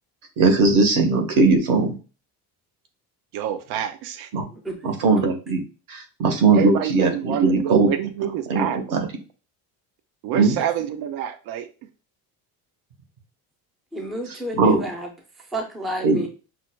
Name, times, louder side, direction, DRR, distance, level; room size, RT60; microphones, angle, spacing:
voice 1, 0.4-1.9 4.3-4.4 4.8-5.6 5.9-7.9 8.5-9.1 10.3-10.6 14.5-14.8 16.0-16.3, right 3 dB, 60° right, 1.0 m, -19 dB
voice 2, 3.3-4.3 6.5-8.8 10.2-11.7, right 10 dB, 85° right, 0.5 m, -27 dB
voice 3, 4.5-4.8 10.6-10.7 13.9-15.1 15.4-16.3, right 1 dB, ahead, 0.3 m, -31 dB
5.9 x 2.2 x 2.2 m
cardioid pair, 160°, 37 cm